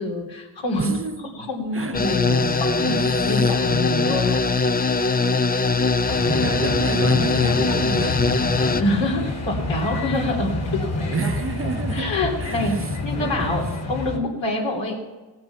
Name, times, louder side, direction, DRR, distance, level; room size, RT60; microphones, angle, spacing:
voice 1, 0.0-0.9 1.3-4.8 8.8-11.4 11.9-15.0, left 1 dB, 80° left, 3.3 m, -26 dB
voice 2, 0.8-1.3 1.7-2.1 2.9-3.5 6.1-8.7 11.0-12.8 13.2-13.4, right 5 dB, 30° right, 0.6 m, -30 dB
sound 1, 1.9-8.8, left 4 dB, 20° left, 0.5 m, -21 dB
sound 2, 6.1-14.2, left 2 dB, 35° left, 2.1 m, -28 dB
sound 3, 6.2-13.4, left 3 dB, 60° left, 3.2 m, -45 dB
17.5 x 7.7 x 5.8 m
cardioid pair, 95°, 44 cm